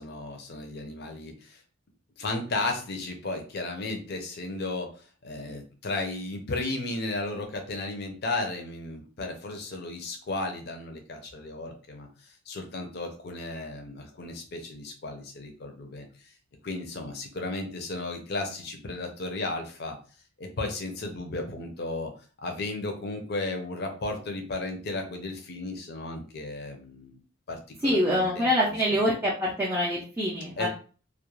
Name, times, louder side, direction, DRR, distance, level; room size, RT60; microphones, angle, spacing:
voice 1, 0.0-1.6 2.2-4.9 5.2-12.1 12.5-16.1 16.6-20.0 20.4-22.1 22.4-27.2 27.5-28.5 28.9-29.0 30.6-30.7, left 2 dB, 45° left, 3 dB, 0.5 m, -34 dB
voice 2, 27.8-30.7, equal, 10° right, -6 dB, 0.4 m, -25 dB
2.3 x 2.1 x 3.0 m, 0.39 s
head